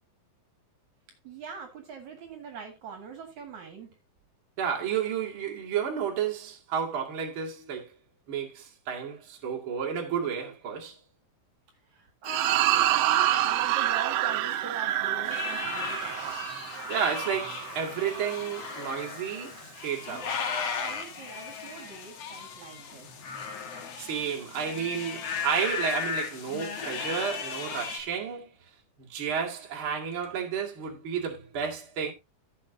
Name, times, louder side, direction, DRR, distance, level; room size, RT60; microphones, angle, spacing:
voice 1, 1.2-4.0 11.9-16.4 20.8-23.1, right 5 dB, 60° right, 3.0 m, -42 dB
voice 2, 4.6-7.9 8.3-11.0 16.9-20.3 24.0-28.5 29.0-32.1, right 7 dB, 40° right, 2.7 m, -31 dB
sound 1, 12.3-18.8, right 13 dB, 75° right, 2.0 m, -28 dB
sound 2, 15.2-28.0, left 6 dB, 50° left, 2.3 m, -36 dB
15.0 x 7.2 x 2.8 m
omnidirectional pair, 4.0 m